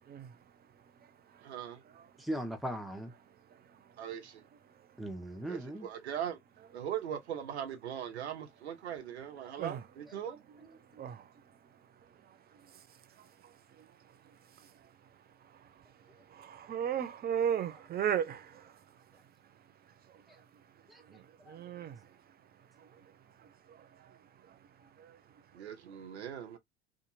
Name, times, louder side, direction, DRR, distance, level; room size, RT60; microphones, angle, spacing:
voice 1, 1.4-1.8 4.0-4.4 5.5-6.4 6.7-10.4 25.5-26.6, right 9 dB, 85° right, 0.6 m, -40 dB
voice 2, 2.2-3.1 5.0-5.9 9.4-9.5 10.1-10.2 20.3-20.4 20.9-21.0 21.5-21.7, right 1 dB, ahead, 0.8 m, -39 dB
voice 3, 16.3-18.7 21.1-22.0 22.8-22.9 23.7-24.2 25.0-25.2, right 9 dB, 30° right, 0.5 m, -35 dB
2.7 x 2.4 x 2.6 m
figure-of-eight pair, 65°, 32 cm